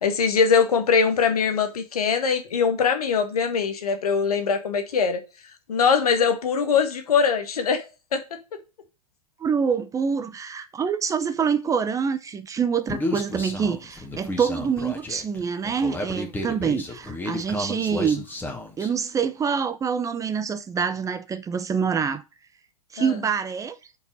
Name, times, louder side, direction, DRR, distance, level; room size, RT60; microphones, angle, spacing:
voice 1, 0.0-5.2 5.7-7.8 8.1-8.4 23.0-23.1, left 6 dB, 70° left, 1.7 m, -22 dB
voice 2, 9.4-18.3 18.8-22.2 22.9-23.8, right 6 dB, 15° right, 0.7 m, -26 dB
Human voice, 12.9-18.9, left 1 dB, 10° left, 1.9 m, -32 dB
5.4 x 4.7 x 6.3 m
figure-of-eight pair, 100°, 20 cm